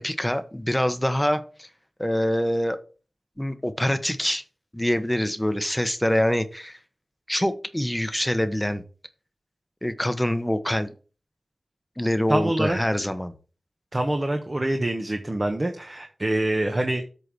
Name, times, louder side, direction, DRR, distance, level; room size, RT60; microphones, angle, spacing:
voice 1, 0.0-1.7 2.0-2.8 3.4-4.4 4.7-6.8 7.3-8.8 9.8-10.9 12.0-13.3, left 1 dB, 10° left, 10 dB, 1.1 m, -25 dB
voice 2, 12.3-12.8 13.9-17.0, right 1 dB, 40° right, 4 dB, 1.2 m, -25 dB
8.2 x 3.7 x 6.2 m, 0.36 s
cardioid pair, 40°, 0 cm